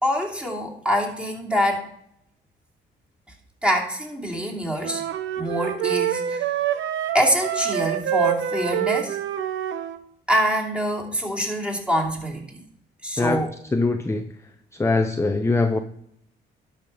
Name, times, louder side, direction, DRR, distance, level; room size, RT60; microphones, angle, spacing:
voice 1, 0.0-1.9 3.6-5.0 5.4-6.4 7.1-9.2 10.3-12.6 13.0-13.5, equal, 5° right, -1 dB, 2.7 m, -25 dB
sound 1, 4.8-10.0, right 11 dB, 75° right, 0.9 m, -26 dB
voice 2, 13.7-14.3 14.7-15.8, left 3 dB, 15° left, 7 dB, 0.7 m, -22 dB
11.5 x 5.8 x 5.4 m, 0.72 s
cardioid pair, 90°, 20 cm